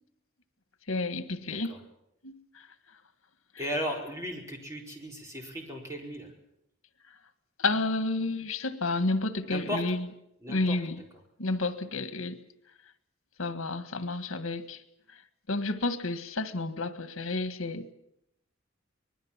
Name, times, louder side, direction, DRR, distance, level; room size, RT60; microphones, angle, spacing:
voice 1, 0.9-1.7 2.2-2.4 7.6-10.0 10.5-11.0 11.4-12.4 13.4-14.8 15.5-17.9, left 2 dB, 85° left, 1.7 m, -30 dB
voice 2, 1.5-1.8 3.6-6.3 9.5-10.0 10.4-10.8, equal, 15° right, 4.7 m, -36 dB
25.5 x 20.5 x 7.4 m
head